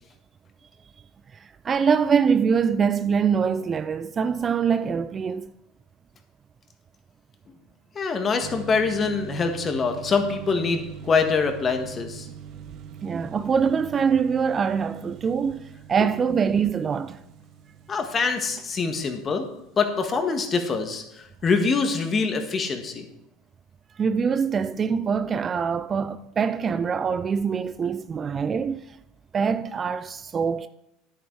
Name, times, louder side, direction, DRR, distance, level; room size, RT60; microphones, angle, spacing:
voice 1, 1.3-5.5 13.0-17.2 23.9-29.0 29.3-30.7, right 6 dB, 30° right, 0.4 m, -24 dB
voice 2, 7.9-12.3 17.9-19.5 19.8-23.1, left 4 dB, 30° left, 1.7 m, -24 dB
sound 1, 8.4-20.9, right 8 dB, 55° right, 0.9 m, -43 dB
10.0 x 8.9 x 4.7 m
supercardioid pair, 100°, 0 cm